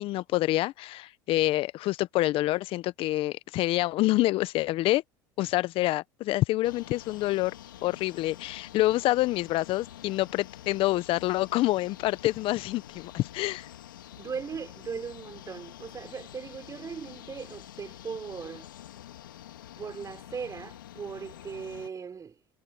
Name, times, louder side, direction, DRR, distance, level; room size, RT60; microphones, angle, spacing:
voice 1, 0.0-5.0 5.4-7.5 7.8-13.7, left 17 dB, 60° left, 1.0 m, -27 dB
sound 1, 6.6-21.9, left 12 dB, 90° left, 2.7 m, -47 dB
voice 2, 14.2-18.7 19.8-22.3, right 6 dB, 30° right, 6.0 m, -38 dB
hypercardioid pair, 80°, 11 cm